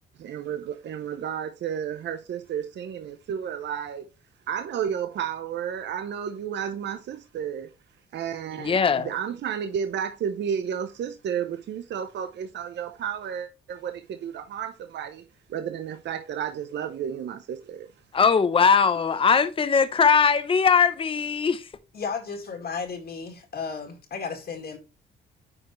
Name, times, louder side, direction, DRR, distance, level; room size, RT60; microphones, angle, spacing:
voice 1, 0.2-4.1 4.5-7.7 8.1-15.2 15.5-17.9, right 8 dB, 65° right, 0.7 m, -32 dB
voice 2, 8.6-9.1 18.1-21.7, left 6 dB, 25° left, 0.7 m, -20 dB
voice 3, 21.9-24.8, left 5 dB, 55° left, 2.0 m, -34 dB
9.7 x 4.5 x 3.1 m
cardioid pair, 90°, 20 cm